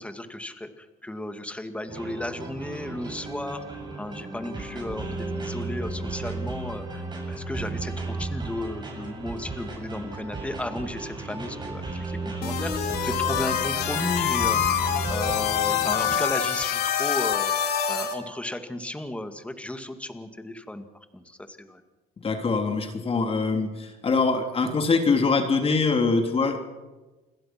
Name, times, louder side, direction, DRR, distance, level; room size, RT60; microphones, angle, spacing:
voice 1, 0.0-3.6 4.0-17.5 17.9-21.8, left 1 dB, 5° left, 8 dB, 2.2 m, -34 dB
sound 1, 1.9-16.2, right 3 dB, 25° right, 7.6 m, -34 dB
sound 2, 12.4-18.1, left 9 dB, 75° left, 4.0 m, -26 dB
voice 2, 22.2-26.6, left 4 dB, 35° left, 5 dB, 3.2 m, -23 dB
29.0 x 21.0 x 6.1 m, 1.2 s
cardioid pair, 110°, 17 cm